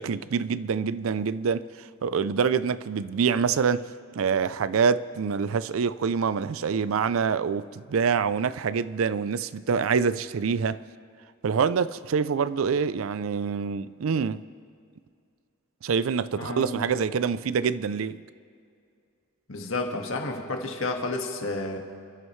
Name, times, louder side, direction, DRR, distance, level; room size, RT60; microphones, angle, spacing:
voice 1, 0.0-3.9 4.2-10.8 11.4-14.4 15.8-18.2, right 6 dB, 90° right, 0.4 m, -26 dB
voice 2, 16.4-16.9 19.5-21.8, left 2 dB, 80° left, 1.7 m, -31 dB
27.5 x 12.5 x 3.2 m
head